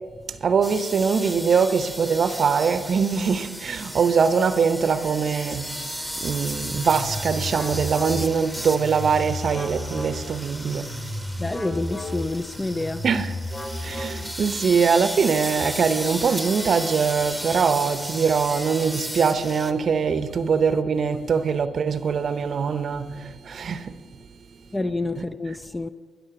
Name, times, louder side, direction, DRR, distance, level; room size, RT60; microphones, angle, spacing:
voice 1, 0.4-5.8 6.2-11.0 13.0-13.3 13.8-23.9, right 6 dB, 55° right, 0.7 m, -22 dB
sound 1, 0.6-19.7, equal, 5° left, 1.1 m, -35 dB
sound 2, 6.5-14.6, left 1 dB, 40° left, 3.8 m, -33 dB
voice 2, 11.4-13.0 24.7-25.9, left 2 dB, 20° left, 0.5 m, -28 dB
16.5 x 5.7 x 6.9 m
hypercardioid pair, 50°, 0 cm